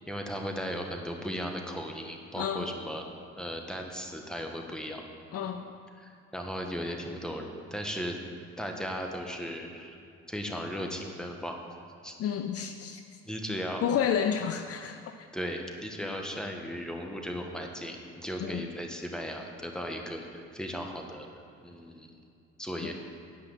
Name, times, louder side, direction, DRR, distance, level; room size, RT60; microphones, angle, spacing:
voice 1, 0.1-3.1 3.4-5.0 6.0-8.2 8.6-10.0 10.3-11.6 12.0-12.1 13.2-13.8 15.3-21.3 21.6-22.1 22.6-22.9, equal, ahead, 2 dB, 1.5 m, -36 dB
voice 2, 2.4-2.7 5.3-5.7 12.2-13.0 13.8-15.3 18.4-18.6 22.8-22.9, left 8 dB, 50° left, 7 dB, 0.6 m, -30 dB
10.5 x 5.7 x 7.3 m, 2.5 s
hypercardioid pair, 65°, 30 cm